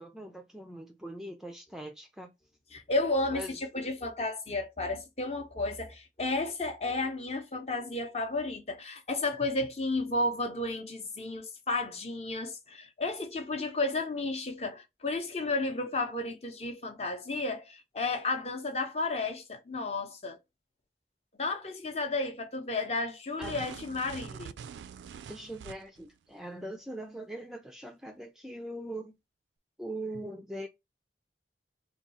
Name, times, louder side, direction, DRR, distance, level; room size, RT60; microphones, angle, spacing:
voice 1, 0.0-2.3 3.3-3.6 23.4-23.6 25.3-29.2 29.8-30.7, right 1 dB, 5° right, 0.3 m, -41 dB
voice 2, 2.7-20.4 21.3-24.6, left 2 dB, 35° left, 0.7 m, -32 dB
sound 1, 23.4-26.1, right 7 dB, 80° right, 0.3 m, -44 dB
3.6 x 2.3 x 4.1 m
head